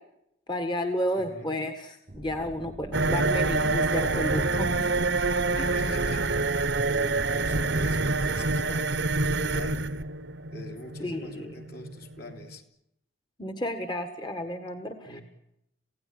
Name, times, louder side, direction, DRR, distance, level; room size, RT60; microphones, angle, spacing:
voice 1, 0.5-4.9 5.5-5.7 11.0-11.5 13.4-15.2, left 1 dB, 20° left, 1.6 m, -32 dB
voice 2, 1.1-1.6 5.7-9.8 10.5-12.6 15.0-15.2, left 1 dB, 50° left, 3.1 m, -43 dB
sound 1, 2.1-8.4, right 1 dB, 35° right, 1.0 m, -44 dB
sound 2, 2.9-12.5, right 3 dB, 65° right, 1.2 m, -27 dB
27.5 x 17.0 x 9.6 m
head